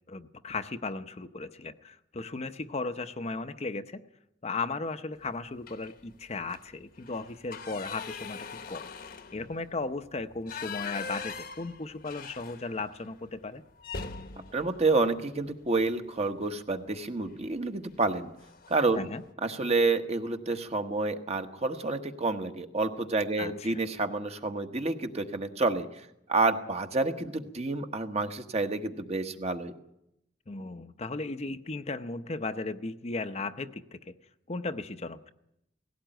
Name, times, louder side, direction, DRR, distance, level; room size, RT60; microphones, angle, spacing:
voice 1, 0.1-4.0 4.4-8.9 9.3-13.6 18.9-19.2 23.4-23.8 30.5-34.1 34.5-35.3, left 3 dB, 35° left, 9 dB, 0.8 m, -36 dB
sound 1, 5.6-6.0 6.4-6.6 6.9-13.0 13.3-13.4 13.8-15.9 17.3-17.6 17.9-18.1 18.4-19.0, left 5 dB, 55° left, 1.2 m, -42 dB
voice 2, 14.5-18.3 18.7-19.1 19.4-29.7, right 3 dB, 35° right, 6 dB, 1.3 m, -29 dB
18.0 x 16.5 x 9.1 m, 0.82 s
head